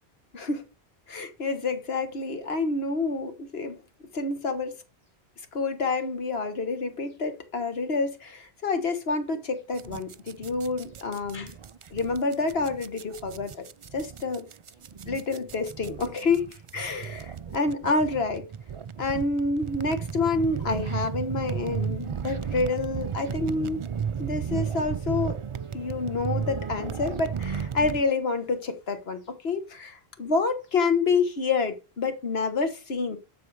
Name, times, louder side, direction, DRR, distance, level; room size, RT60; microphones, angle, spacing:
voice 1, 0.3-0.7 1.1-3.8 4.1-4.8 5.5-11.6 11.9-13.6 13.9-14.5 15.1-18.4 19.0-23.8 24.2-25.4 25.7-33.2, left 3 dB, 70° left, 1.6 m, -28 dB
sound 1, 9.8-28.0, right 7 dB, 50° right, 0.3 m, -34 dB
12.0 x 4.4 x 4.8 m
omnidirectional pair, 1.1 m